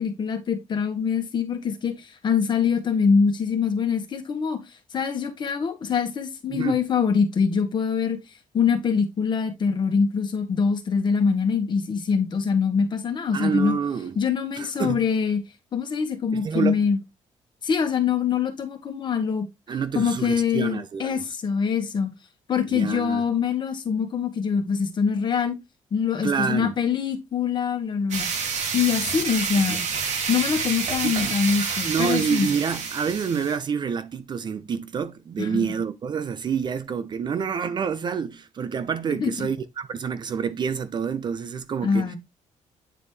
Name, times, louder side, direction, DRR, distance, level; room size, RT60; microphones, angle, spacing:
voice 1, 0.0-4.6 4.9-8.2 8.5-13.8 14.1-15.4 15.7-17.0 17.6-19.5 19.9-22.1 22.5-25.6 25.9-28.3 28.7-29.8 30.3-32.5 35.4-35.6 39.2-39.3 41.8-42.2, left 6 dB, 40° left, 1.5 m, -24 dB
voice 2, 13.3-14.2 14.6-15.0 16.3-16.8 19.7-21.2 22.7-23.2 26.2-26.7 29.5-29.8 31.0-31.3 31.8-42.2, right 6 dB, 35° right, 0.6 m, -28 dB
sound 1, 28.1-33.6, right 5 dB, 70° right, 2.2 m, -28 dB
9.1 x 4.1 x 3.2 m
cardioid pair, 165°, 12 cm